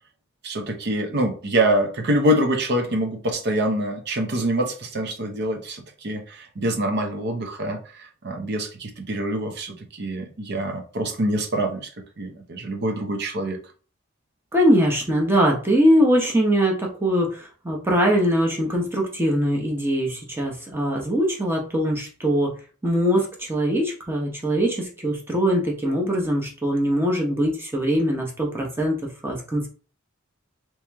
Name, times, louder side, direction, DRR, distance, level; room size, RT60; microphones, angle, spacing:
voice 1, 0.4-11.9 12.2-13.6, right 1 dB, 55° right, 4 dB, 0.7 m, -25 dB
voice 2, 14.5-22.5 22.8-29.0 29.2-29.7, equal, 10° right, -1 dB, 0.9 m, -22 dB
3.0 x 3.0 x 3.4 m, 0.39 s
head